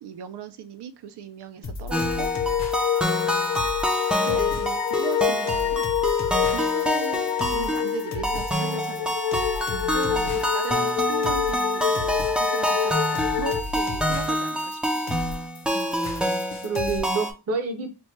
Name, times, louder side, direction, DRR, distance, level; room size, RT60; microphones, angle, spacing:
voice 1, 0.0-2.3 4.2-5.8 6.4-7.2 7.5-9.1 9.9-15.0, right 7 dB, 85° right, 10 dB, 0.5 m, -37 dB
sound 1, 1.6-17.0, left 4 dB, 45° left, 0.8 m, -36 dB
sound 2, 1.9-13.6, left 9 dB, 85° left, 0.6 m, -27 dB
sound 3, 1.9-17.3, equal, 5° right, 0.3 m, -27 dB
voice 2, 9.7-10.4 15.7-17.9, right 4 dB, 40° right, 6 dB, 0.6 m, -31 dB
4.3 x 2.1 x 3.2 m, 0.30 s
wide cardioid pair, 145°, 39 cm